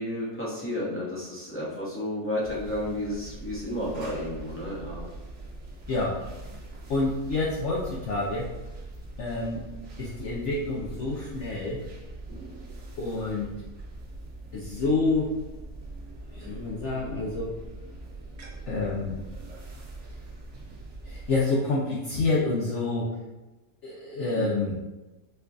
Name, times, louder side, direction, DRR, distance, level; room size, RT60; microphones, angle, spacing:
voice 1, 0.0-5.1 24.3-24.5, left 1 dB, 15° left, -8 dB, 0.5 m, -32 dB
sound 1, 2.4-21.4, right 2 dB, 60° right, 0.9 m, -42 dB
voice 2, 5.9-6.2 6.9-8.5 9.2-9.6 10.0-11.8 13.0-13.5 14.5-15.3 16.3-17.6 18.7-19.2 21.0-23.2 23.8-24.7, left 3 dB, 65° left, -4 dB, 0.7 m, -28 dB
4.4 x 2.5 x 2.3 m, 1.1 s
omnidirectional pair, 1.5 m